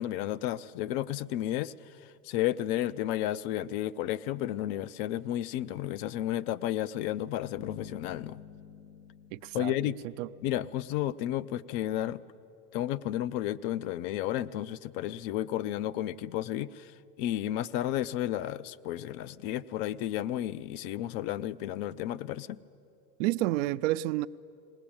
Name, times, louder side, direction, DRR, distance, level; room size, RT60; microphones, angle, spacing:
voice 1, 0.0-1.7 2.2-8.4 9.5-10.0 10.4-12.2 12.7-16.9 17.2-22.6, left 13 dB, 40° left, 0.4 m, -32 dB
Bass guitar, 7.6-10.7, left 9 dB, 70° left, 1.0 m, -48 dB
voice 2, 9.3-10.3 23.2-24.3, right 16 dB, 55° right, 0.5 m, -30 dB
20.0 x 19.5 x 8.7 m
supercardioid pair, 130°, 48 cm